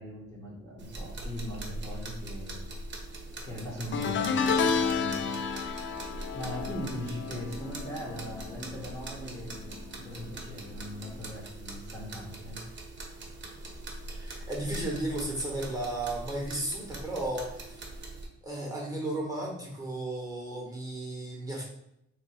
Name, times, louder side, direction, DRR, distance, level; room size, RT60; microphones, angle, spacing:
voice 1, 0.0-2.7 3.4-5.3 6.3-12.6, equal, 10° left, -5 dB, 1.2 m, -40 dB
sound 1, 0.8-18.3, right 2 dB, 40° right, 1.0 m, -42 dB
sound 2, 3.9-9.3 9.6-10.0 11.2-11.3, left 5 dB, 40° left, 0.4 m, -31 dB
voice 2, 14.1-17.8 18.4-21.6, right 1 dB, 10° right, -3 dB, 1.3 m, -34 dB
3.1 x 2.9 x 4.4 m, 0.80 s
cardioid pair, 90°, 30 cm